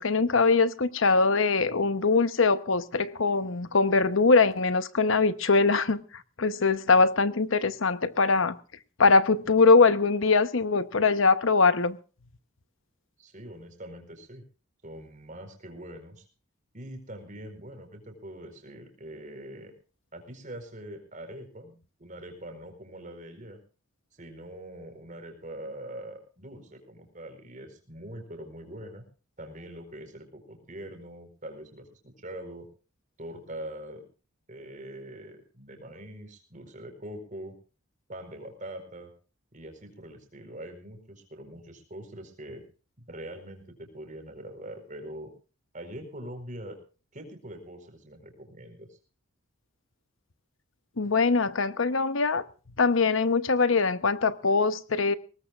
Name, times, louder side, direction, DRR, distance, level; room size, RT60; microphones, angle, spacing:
voice 1, 0.0-6.0 6.4-8.6 9.0-12.0 51.0-52.4 52.8-55.1, left 4 dB, 70° left, 0.9 m, -22 dB
voice 2, 13.2-14.4 14.8-16.2 16.7-19.7 20.1-23.6 24.1-29.0 29.4-32.7 33.2-34.0 34.5-37.5 38.1-39.1 39.5-42.6 43.0-45.3 45.7-46.8 47.1-48.9, right 1 dB, 40° right, 4.4 m, -43 dB
21.5 x 19.0 x 2.5 m
head